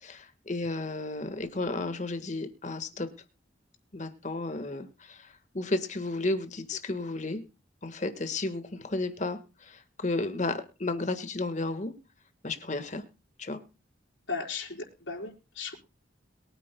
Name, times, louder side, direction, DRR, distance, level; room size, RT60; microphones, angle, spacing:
voice 1, 0.0-3.1 3.9-5.3 5.5-7.4 7.8-11.9 12.4-13.0 13.4-13.6, left 2 dB, 40° left, 9 dB, 1.5 m, -33 dB
voice 2, 14.3-15.7, left 4 dB, 90° left, -1 dB, 4.2 m, -36 dB
23.0 x 9.0 x 2.2 m, 0.31 s
head